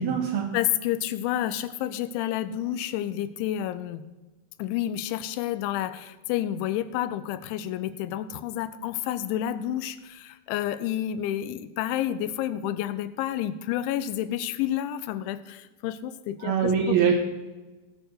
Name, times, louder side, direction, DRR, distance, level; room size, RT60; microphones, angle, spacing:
voice 1, 0.0-0.5 16.4-17.1, right 7 dB, 70° right, 2 dB, 2.4 m, -23 dB
voice 2, 0.5-4.1 4.6-17.0, left 12 dB, 85° left, 13 dB, 2.9 m, -30 dB
17.5 x 6.6 x 6.3 m, 1.2 s
omnidirectional pair, 5.5 m